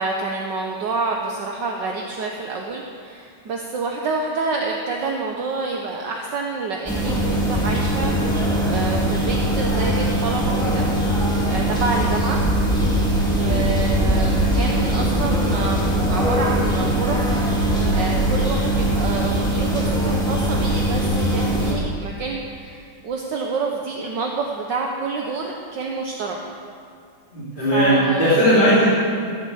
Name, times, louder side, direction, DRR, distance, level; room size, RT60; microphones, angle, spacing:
voice 1, 0.0-10.9 11.2-12.4 13.3-15.8 16.0-26.4 27.7-28.5, right 4 dB, 65° right, 0 dB, 1.6 m, -28 dB
sound 1, 6.9-21.7, right 1 dB, ahead, 2.3 m, -21 dB
voice 2, 27.3-28.9, equal, 25° left, -10 dB, 3.3 m, -18 dB
16.5 x 7.9 x 7.8 m, 2.2 s
omnidirectional pair, 2.2 m